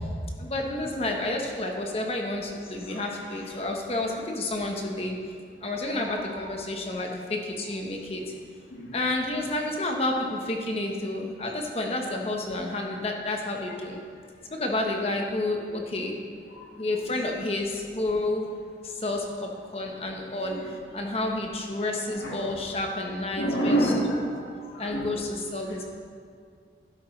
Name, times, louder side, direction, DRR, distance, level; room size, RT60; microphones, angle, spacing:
voice 1, 0.4-5.2 5.6-8.3 8.9-14.0 14.5-16.1 16.7-18.4 18.8-23.9 24.8-25.8, left 2 dB, 35° left, 1 dB, 1.1 m, -30 dB
voice 2, 6.0-6.5 8.7-8.9 16.5-16.7 20.5-20.6 22.2-22.5 23.4-25.1, right 1 dB, 80° left, -2 dB, 2.0 m, -29 dB
12.0 x 11.0 x 3.3 m, 2.2 s
head